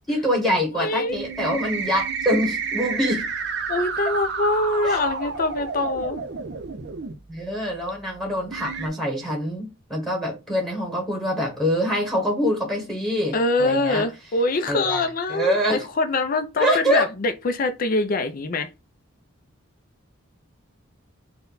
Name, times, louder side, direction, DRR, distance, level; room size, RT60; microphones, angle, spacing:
voice 1, 0.1-3.3 4.8-5.0 7.3-14.0 14.7-15.8 16.6-17.1, equal, ahead, 1.1 m, -25 dB
voice 2, 0.8-1.3 3.7-6.2 13.3-18.7, left 2 dB, 40° left, 0.4 m, -24 dB
sound 1, 1.1-7.1 7.9-8.0 8.5-8.9, right 5 dB, 50° right, 0.6 m, -30 dB
4.2 x 2.2 x 3.8 m
head